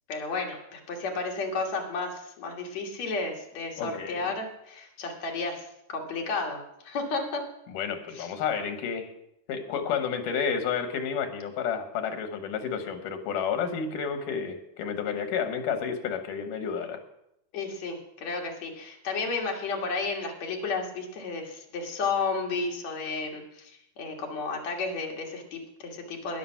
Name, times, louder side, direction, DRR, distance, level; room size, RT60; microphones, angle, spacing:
voice 1, 0.1-7.4 8.1-8.3 17.5-26.4, left 4 dB, 60° left, 1 dB, 2.9 m, -32 dB
voice 2, 3.8-4.3 7.7-9.1 9.5-17.0, left 6 dB, 80° left, 8 dB, 2.8 m, -31 dB
12.5 x 10.5 x 5.8 m, 0.82 s
omnidirectional pair, 3.7 m